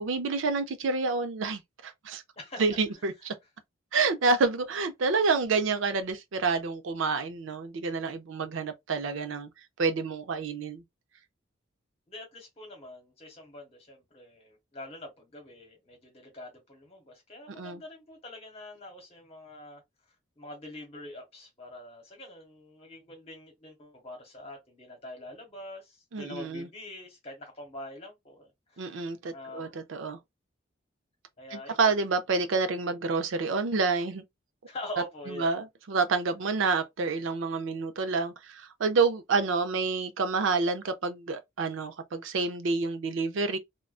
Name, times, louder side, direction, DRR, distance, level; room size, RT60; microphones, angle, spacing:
voice 1, 0.0-2.2 2.6-3.3 3.9-9.5 9.8-10.8 17.6-17.8 26.1-26.7 28.8-30.2 31.5-34.2 35.3-43.6, right 4 dB, 75° right, 0.5 m, -28 dB
voice 2, 12.1-19.8 20.4-29.0 29.3-29.7 31.4-31.9 34.7-35.6, left 1 dB, 30° left, 1.0 m, -44 dB
2.5 x 2.2 x 2.3 m
head